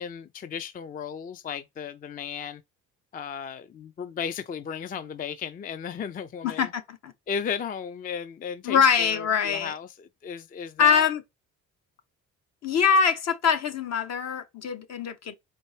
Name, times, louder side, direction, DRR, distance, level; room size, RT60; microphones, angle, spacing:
voice 1, 0.0-2.6 3.1-6.7 7.3-11.1, left 7 dB, 30° left, 0.3 m, -35 dB
voice 2, 6.4-7.1 8.6-9.7 10.8-11.2 12.6-15.3, left 6 dB, 60° left, 0.8 m, -23 dB
4.3 x 2.7 x 3.1 m
cardioid pair, 90°, 30 cm